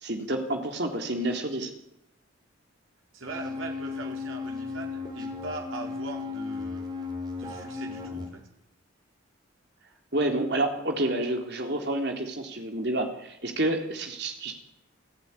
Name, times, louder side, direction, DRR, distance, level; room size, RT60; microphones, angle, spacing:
voice 1, 0.0-1.7 10.1-14.6, right 1 dB, 55° right, 3 dB, 3.7 m, -29 dB
voice 2, 3.1-6.9 7.4-8.5, right 3 dB, 85° right, 2 dB, 4.5 m, -40 dB
sound 1, 3.3-8.3, left 4 dB, 20° right, 3.8 m, -35 dB
28.5 x 15.5 x 9.9 m, 0.91 s
head